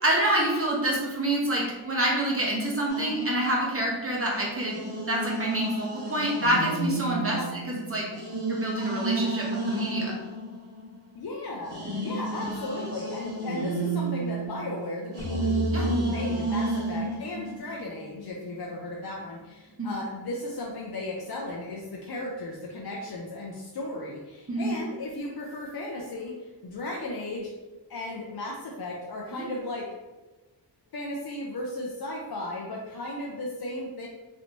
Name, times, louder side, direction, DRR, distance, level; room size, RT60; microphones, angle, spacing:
voice 1, 0.0-4.8 5.1-7.4 7.7-8.1 8.5-10.2 12.4-12.5 15.7-15.8 19.8-19.9 24.5-24.7 29.3-29.4, right 1 dB, 30° right, -3 dB, 0.9 m, -27 dB
sound 1, 2.9-4.1 4.7-11.2 11.6-17.6, right 2 dB, 50° right, 1.3 m, -32 dB
voice 2, 11.1-27.5 27.9-29.9 30.9-34.1, left 2 dB, 55° left, -2 dB, 0.5 m, -35 dB
sound 2, 15.2-18.4, left 2 dB, 10° left, 1.0 m, -33 dB
3.1 x 2.9 x 2.6 m, 1.2 s
wide cardioid pair, 60°, 44 cm